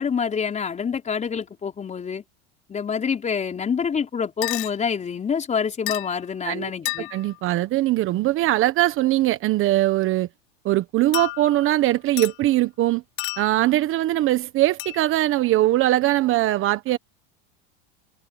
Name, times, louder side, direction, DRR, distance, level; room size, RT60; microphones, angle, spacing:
voice 1, 0.0-2.2 2.7-7.1, left 6 dB, 25° left, 5.0 m, -26 dB
sound 1, 4.4-4.7 5.9-6.2 6.8-7.3 11.1-11.8 12.2-12.4 13.2-13.7 14.8-15.0, left 25 dB, 65° left, 2.7 m, -31 dB
voice 2, 7.1-10.3 10.6-13.0 13.4-17.0, right 15 dB, 40° right, 1.2 m, -21 dB
supercardioid pair, 120°, 31 cm